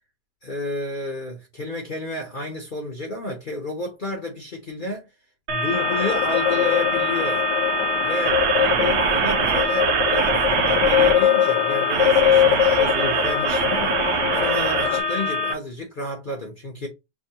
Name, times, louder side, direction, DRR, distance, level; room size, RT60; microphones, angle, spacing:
voice 1, 0.4-5.1 5.5-7.5 8.0-16.9, left 1 dB, 45° left, 0.6 m, -31 dB
sound 1, 5.5-15.5, right 3 dB, 70° right, 1.1 m, -23 dB
sound 2, 5.7-15.0, left 10 dB, 80° left, 1.2 m, -22 dB
6.0 x 2.3 x 2.8 m
omnidirectional pair, 1.9 m